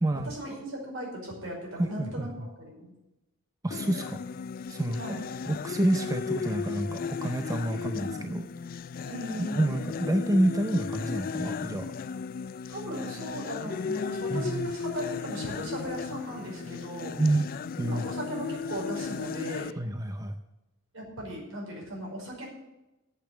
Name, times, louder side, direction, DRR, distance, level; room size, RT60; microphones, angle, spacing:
voice 1, 0.1-2.9 4.9-5.2 7.7-8.3 9.0-9.7 12.7-17.2 17.9-19.8 20.9-22.5, equal, 70° right, -1 dB, 5.1 m, -37 dB
voice 2, 1.8-2.5 3.6-4.2 4.7-5.2 5.5-8.5 9.6-11.9 14.3-14.7 17.2-17.5 17.8-18.0 19.8-20.4, right 1 dB, 15° right, 7 dB, 0.5 m, -28 dB
sound 1, 3.7-19.7, left 5 dB, 40° left, 0.3 m, -35 dB
9.1 x 8.2 x 8.7 m, 0.98 s
head